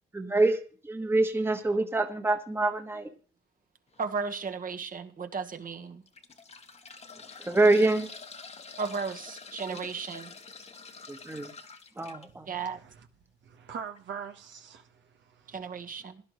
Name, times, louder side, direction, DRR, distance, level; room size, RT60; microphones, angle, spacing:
voice 1, 0.1-3.1 7.4-8.1 9.7-9.9 11.1-11.5 12.0-12.5, right 2 dB, 10° right, 1.4 m, -26 dB
sound 1, 3.9-4.2 4.8-4.9 5.9-12.3 13.9-14.0 14.2-14.3, left 4 dB, 35° left, 1.3 m, -47 dB
voice 2, 4.0-6.0 8.8-10.3 12.5-12.8 15.5-16.2, right 5 dB, 45° right, 1.6 m, -35 dB
voice 3, 12.5-13.1 13.4-16.0, right 7 dB, 70° right, 1.3 m, -44 dB
17.0 x 11.0 x 3.2 m
cardioid pair, 90°, 20 cm